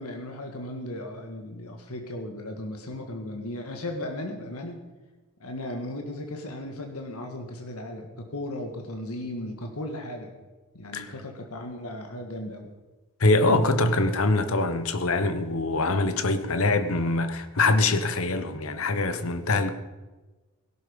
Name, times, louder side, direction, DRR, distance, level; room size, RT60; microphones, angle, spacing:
voice 1, 0.0-4.8 5.4-10.3 10.7-12.7, left 1 dB, 85° left, 1.9 m, -36 dB
voice 2, 13.2-19.7, left 2 dB, 70° left, 1.2 m, -24 dB
18.0 x 12.0 x 5.3 m
head